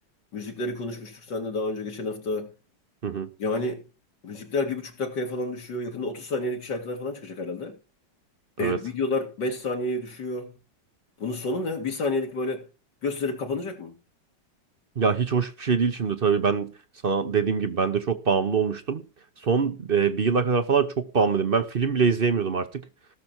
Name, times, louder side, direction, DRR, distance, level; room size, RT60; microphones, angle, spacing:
voice 1, 0.3-2.5 3.4-3.8 4.2-7.7 8.6-10.5 11.2-12.6 13.0-13.9, left 2 dB, 70° left, 2.8 m, -30 dB
voice 2, 15.0-16.7 17.0-19.0 19.4-22.8, right 5 dB, 45° right, 0.8 m, -24 dB
17.0 x 6.8 x 4.4 m
omnidirectional pair, 1.9 m